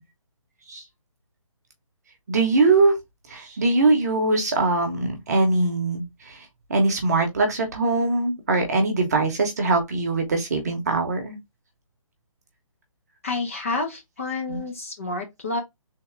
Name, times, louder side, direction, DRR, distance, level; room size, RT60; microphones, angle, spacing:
voice 1, 2.3-3.0 3.3-6.4 6.7-11.4 14.5-14.6, right 3 dB, 30° right, 0.9 m, -22 dB
voice 2, 13.2-15.6, left 3 dB, 25° left, 0.7 m, -29 dB
3.6 x 2.7 x 3.2 m
hypercardioid pair, 175°, 18 cm